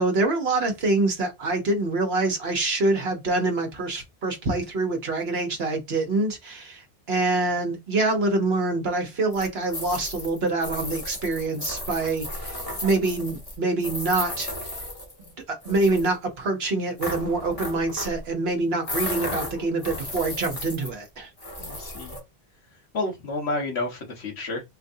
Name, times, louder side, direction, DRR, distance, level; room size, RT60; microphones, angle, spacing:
voice 1, 0.0-14.5 15.2-21.3, right 2 dB, 70° right, 1.2 m, -25 dB
sound 1, 9.3-15.3 15.6-16.1 17.0-18.2 18.8-21.1 21.4-22.2, left 1 dB, 35° left, 1.5 m, -34 dB
voice 2, 21.6-22.1 22.9-24.6, left 2 dB, 75° left, 1.4 m, -30 dB
4.5 x 2.5 x 2.7 m
omnidirectional pair, 1.1 m